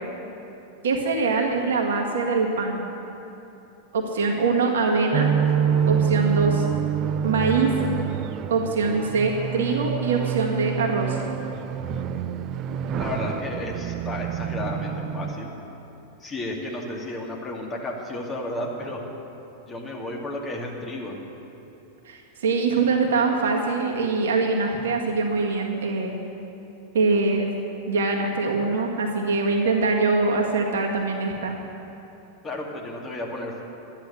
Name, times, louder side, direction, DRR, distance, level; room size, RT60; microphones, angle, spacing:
voice 1, 0.8-2.9 3.9-5.3 5.9-6.7 7.2-7.7 8.5-11.2 22.1-26.1 26.9-27.5 27.9-31.6, right 3 dB, 60° right, 0 dB, 1.7 m, -23 dB
sound 1, 5.1-15.3, right 8 dB, 35° right, 0.5 m, -26 dB
voice 2, 13.0-15.5 16.2-19.1 19.7-21.1 32.4-33.6, left 1 dB, 20° left, -1 dB, 2.4 m, -32 dB
12.0 x 10.5 x 7.8 m, 3.0 s
figure-of-eight pair, 90°, 0 cm